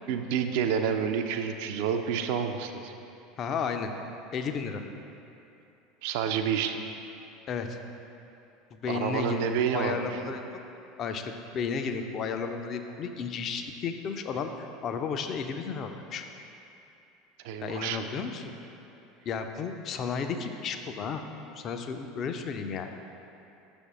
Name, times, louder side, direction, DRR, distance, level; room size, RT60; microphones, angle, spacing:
voice 1, 0.1-2.9 6.0-6.8 8.9-10.2 17.4-18.1, right 7 dB, 55° right, 6 dB, 0.4 m, -29 dB
voice 2, 3.4-3.9 4.3-4.8 7.5-7.8 8.7-10.4 11.0-16.2 17.6-18.5 19.3-21.2 21.5-22.9, left 6 dB, 40° left, 6 dB, 0.4 m, -33 dB
6.4 x 3.5 x 6.1 m, 2.8 s
figure-of-eight pair, 70°, 0 cm